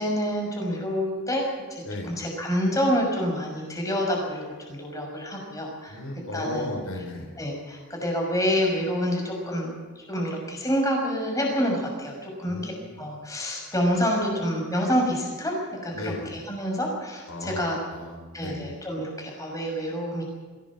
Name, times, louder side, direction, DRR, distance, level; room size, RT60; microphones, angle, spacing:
voice 1, 0.0-1.8 2.2-6.0 6.3-6.7 7.4-17.8 18.3-20.2, equal, 15° left, 0 dB, 6.1 m, -27 dB
voice 2, 5.9-7.3 12.5-13.0 15.9-16.3 17.3-17.6 17.9-18.6, left 1 dB, 80° left, 2 dB, 5.5 m, -35 dB
22.5 x 17.0 x 7.4 m, 1.4 s
head